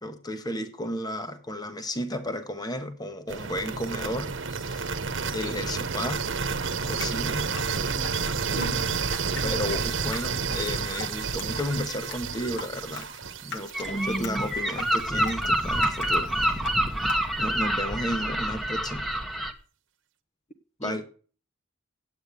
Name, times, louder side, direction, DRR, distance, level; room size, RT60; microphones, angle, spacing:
voice 1, 0.0-5.0 5.3-6.3 6.8-8.0 9.4-13.1 13.4-16.6 17.4-19.1 20.8-21.0, equal, 20° left, 1.2 m, -33 dB
sound 1, 3.3-15.2, right 5 dB, 85° right, 1.0 m, -30 dB
Drip, 6.6-17.6, left 3 dB, 65° left, 1.6 m, -41 dB
voice 2, 8.5-8.9 13.9-14.4 20.8-21.0, right 1 dB, 35° left, 1.1 m, -33 dB
Gull seagull, 13.7-19.5, right 1 dB, ahead, 1.2 m, -27 dB
8.9 x 8.9 x 8.3 m
head